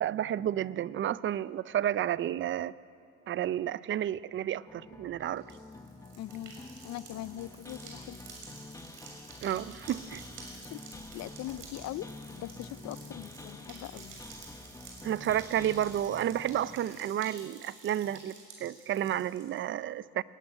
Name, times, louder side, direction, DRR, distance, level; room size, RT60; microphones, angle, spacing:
voice 1, 0.0-2.7 3.3-5.4 9.4-10.2 15.0-18.3 18.6-20.2, right 11 dB, 35° right, 19 dB, 0.4 m, -31 dB
sound 1, 4.7-16.8, left 3 dB, 10° left, 1.0 m, -48 dB
sound 2, 5.4-19.6, right 4 dB, 65° right, 6.7 m, -51 dB
voice 2, 6.2-6.5 6.8-8.2 10.6-14.2, left 14 dB, 50° left, 17 dB, 0.5 m, -41 dB
21.0 x 17.0 x 9.7 m, 2.5 s
cardioid pair, 130°, 35 cm